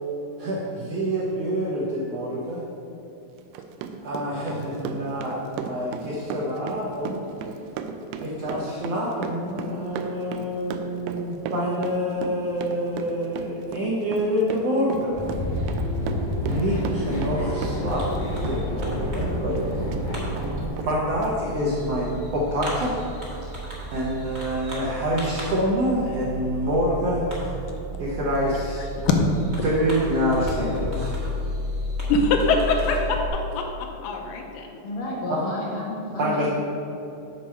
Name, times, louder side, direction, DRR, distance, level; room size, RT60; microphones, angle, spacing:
voice 1, 0.4-2.6 4.0-7.3 8.1-15.2 16.4-18.0 18.4-19.6 20.8-23.0 23.9-27.5 28.0-28.8 29.6-31.1 35.3-35.4 36.2-36.5, equal, 75° right, -5 dB, 1.4 m, -26 dB
Run, 3.4-18.2 18.4-20.0 20.4-20.5 20.8-20.9 21.2-21.3, right 6 dB, 90° right, 2.3 m, -35 dB
sound 1, 15.1-20.7, left 1 dB, 35° left, 0.7 m, -28 dB
Fireworks, 17.9-33.3, equal, 55° right, 0.7 m, -33 dB
voice 2, 32.1-33.7 34.0-34.7, left 3 dB, 80° left, 2 dB, 2.3 m, -23 dB
voice 3, 34.8-36.5, left 1 dB, 60° left, -3 dB, 1.8 m, -31 dB
7.4 x 4.5 x 6.3 m, 2.9 s
omnidirectional pair, 4.0 m